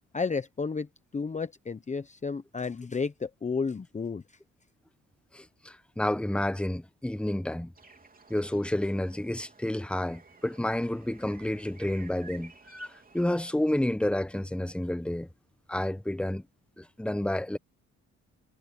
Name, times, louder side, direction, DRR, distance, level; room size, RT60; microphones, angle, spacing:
voice 1, 0.1-0.9 1.1-4.2, left 4 dB, 25° left, 0.9 m, -32 dB
voice 2, 5.3-7.7 8.3-15.3 15.7-16.4 16.8-17.6, left 1 dB, 5° left, 1.3 m, -30 dB
sound 1, 7.8-13.8, right 4 dB, 30° right, 3.4 m, -54 dB
cardioid pair, 90°, 30 cm